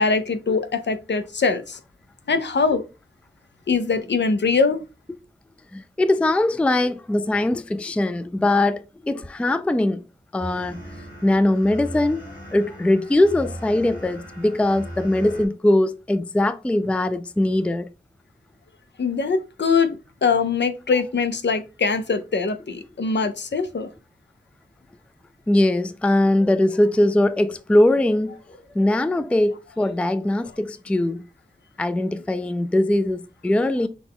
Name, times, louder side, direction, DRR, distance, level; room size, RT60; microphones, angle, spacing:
voice 1, 0.0-1.8 2.3-2.8 3.7-4.8 19.0-23.9, left 4 dB, 70° left, 0.6 m, -22 dB
voice 2, 5.7-10.0 10.3-10.8 11.2-17.9 25.5-28.4 28.7-31.2 31.8-33.9, left 1 dB, 5° left, 0.3 m, -21 dB
sound 1, 10.4-15.5, equal, 50° left, 2.2 m, -38 dB
6.1 x 2.2 x 3.5 m
wide cardioid pair, 65°, 19 cm